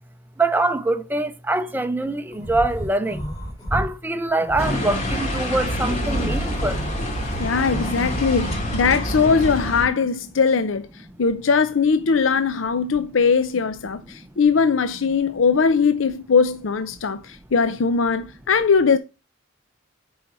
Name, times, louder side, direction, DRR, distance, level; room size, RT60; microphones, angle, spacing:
voice 1, 0.4-3.2 3.7-6.8 14.1-14.3, right 2 dB, 10° right, 0.5 m, -24 dB
sound 1, 2.3-3.9 4.3-8.5, equal, 20° left, 2.9 m, -33 dB
sound 2, 4.6-9.9, equal, 35° left, 2.4 m, -26 dB
voice 2, 7.4-19.0, left 5 dB, 75° left, 0.6 m, -20 dB
7.1 x 4.9 x 5.4 m
head